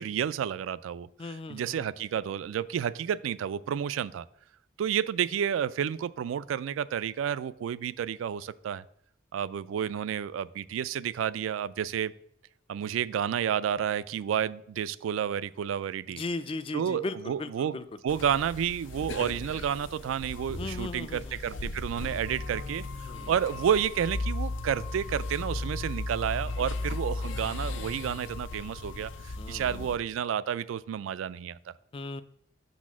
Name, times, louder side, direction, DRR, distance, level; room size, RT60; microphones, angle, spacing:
voice 1, 0.0-4.2 4.8-8.8 9.3-12.1 12.7-16.2 16.7-17.8 18.0-31.7, right 8 dB, 85° right, 17 dB, 0.3 m, -31 dB
voice 2, 1.2-1.8 16.1-17.8 20.5-21.4 23.1-23.3 29.4-29.9 31.9-32.2, left 3 dB, 25° left, 13 dB, 0.3 m, -37 dB
sound 1, 18.1-30.0, left 2 dB, 75° left, 0.6 m, -36 dB
6.4 x 4.1 x 6.0 m, 0.70 s
head